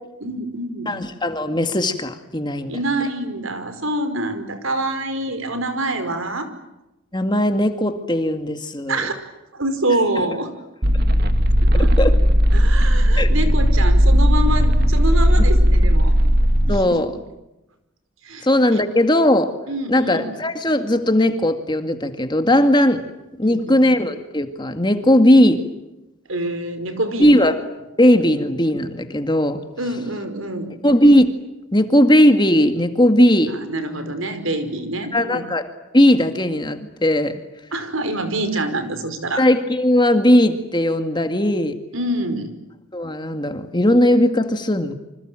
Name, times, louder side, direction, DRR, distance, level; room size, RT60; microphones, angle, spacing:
voice 1, 0.2-0.9 2.7-6.5 8.9-9.1 9.5-10.5 11.7-12.1 12.5-16.1 16.7-17.0 18.2-18.5 18.7-18.8 19.7-20.3 23.4-23.8 26.3-27.5 29.8-30.7 33.5-35.4 37.7-39.4 41.9-42.5, right 1 dB, 75° right, 9 dB, 5.1 m, -26 dB
voice 2, 0.9-2.8 7.1-9.0 12.0-12.2 13.2-13.3 16.7-17.1 18.4-19.5 19.9-23.0 23.4-25.6 27.2-27.6 28.0-29.6 30.8-31.3 31.7-33.5 35.1-35.7 35.9-37.4 39.4-41.8 42.9-44.9, left 1 dB, 20° left, 7 dB, 2.1 m, -17 dB
sound 1, 10.8-16.8, equal, 50° right, 2.2 m, -15 dB
28.0 x 26.0 x 7.7 m, 0.95 s
head